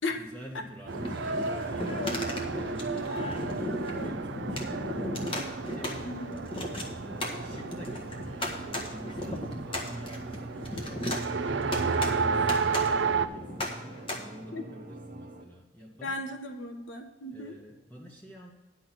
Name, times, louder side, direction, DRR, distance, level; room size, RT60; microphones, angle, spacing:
voice 1, 0.1-6.5 7.0-16.2 17.3-18.5, equal, 10° left, -2 dB, 1.1 m, -47 dB
sound 1, 0.9-14.2, left 1 dB, 25° left, 1.4 m, -36 dB
sound 2, 0.9-15.4, right 1 dB, 45° right, 1.3 m, -45 dB
Race car auto racing, 0.9-13.3, right 5 dB, 65° right, 0.5 m, -33 dB
voice 2, 6.0-6.4 14.5-14.6 16.0-17.6, left 2 dB, 75° left, 5 dB, 1.2 m, -35 dB
10.5 x 6.3 x 6.0 m, 1.2 s
head